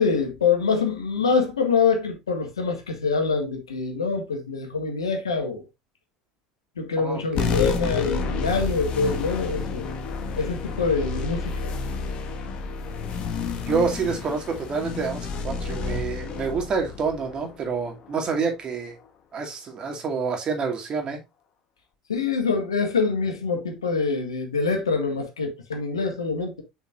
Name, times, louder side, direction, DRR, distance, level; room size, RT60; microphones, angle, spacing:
voice 1, 0.0-5.6 6.8-9.9 10.4-11.7 22.1-26.6, left 5 dB, 80° left, 1.7 m, -25 dB
voice 2, 7.0-7.6 13.7-18.9 19.3-21.2, right 5 dB, 35° right, 2.3 m, -28 dB
sound 1, 7.3-18.2, left 5 dB, 45° left, 1.4 m, -30 dB
7.4 x 5.7 x 2.4 m
figure-of-eight pair, 70°, 3 cm